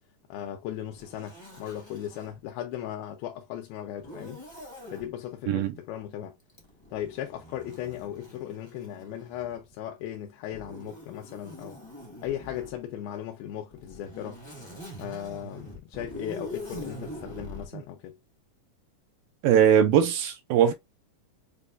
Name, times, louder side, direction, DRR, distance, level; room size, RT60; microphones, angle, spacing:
voice 1, 0.3-4.4 4.9-6.4 6.9-11.8 12.2-14.4 15.0-18.2, left 11 dB, 90° left, 2.6 m, -37 dB
Zipper (clothing), 1.0-2.4 4.0-5.1 6.5-9.7 10.5-12.8 13.7-17.7, equal, 35° left, 0.4 m, -44 dB
voice 2, 19.4-20.7, right 9 dB, 80° right, 2.3 m, -20 dB
6.9 x 2.3 x 2.5 m
omnidirectional pair, 4.2 m